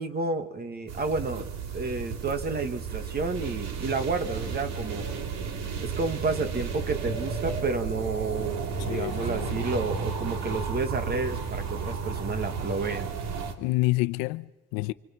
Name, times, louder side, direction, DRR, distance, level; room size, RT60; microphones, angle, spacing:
voice 1, 0.0-5.1 5.8-13.1, right 3 dB, 30° right, 2.0 m, -31 dB
sound 1, 0.9-13.5, right 5 dB, 50° right, 3.0 m, -33 dB
voice 2, 8.9-9.6 13.6-14.9, left 21 dB, 85° left, 0.9 m, -28 dB
26.5 x 26.5 x 6.0 m
cardioid pair, 130°, 34 cm